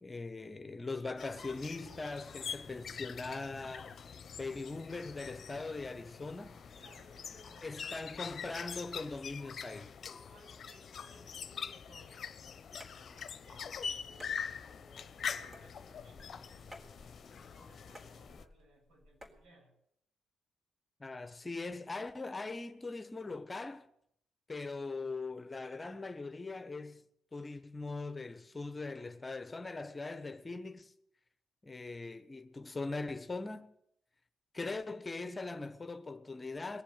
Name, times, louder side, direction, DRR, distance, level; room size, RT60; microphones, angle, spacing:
voice 1, 0.0-4.0 4.4-6.6 7.6-9.9 21.0-23.9 24.5-27.0 27.3-30.9 31.6-33.7 34.5-36.8, left 3 dB, 30° left, 1.2 m, -41 dB
sound 1, 1.2-18.4, left 7 dB, 55° left, 0.9 m, -44 dB
voice 2, 6.8-8.3 10.3-12.4 12.9-17.0 17.2-19.7, right 1 dB, 70° right, 7.5 m, -62 dB
sound 2, 12.8-19.5, left 1 dB, 25° right, 3.8 m, -57 dB
20.5 x 7.4 x 9.1 m
hypercardioid pair, 40°, 0 cm